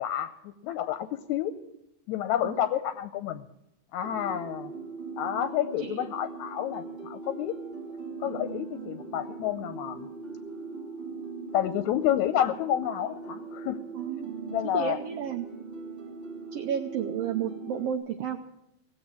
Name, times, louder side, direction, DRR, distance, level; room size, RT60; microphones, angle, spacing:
voice 1, 0.0-1.5 2.1-3.5 3.9-4.7 5.2-7.6 8.2-10.1 11.5-13.8 14.5-15.0, left 11 dB, 75° left, 10 dB, 1.9 m, -29 dB
harp heaven, 4.0-17.9, right 4 dB, 15° right, 2.1 m, -40 dB
voice 2, 13.9-14.3 14.7-15.5 16.5-18.5, right 9 dB, 80° right, 5 dB, 1.4 m, -32 dB
17.5 x 7.8 x 8.4 m, 0.83 s
omnidirectional pair, 3.7 m